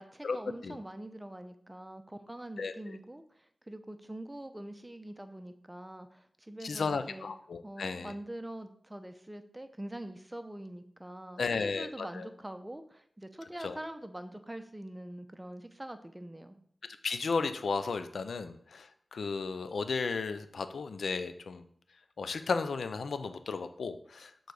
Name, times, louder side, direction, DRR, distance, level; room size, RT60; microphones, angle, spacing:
voice 1, 0.0-7.3 7.6-16.6, right 1 dB, 15° right, 8 dB, 0.8 m, -44 dB
voice 2, 6.6-8.1 11.4-12.3 13.6-13.8 17.0-21.6 22.2-24.3, left 4 dB, 90° left, 10 dB, 0.5 m, -34 dB
6.7 x 3.9 x 4.8 m, 0.63 s
cardioid pair, 50°, 0 cm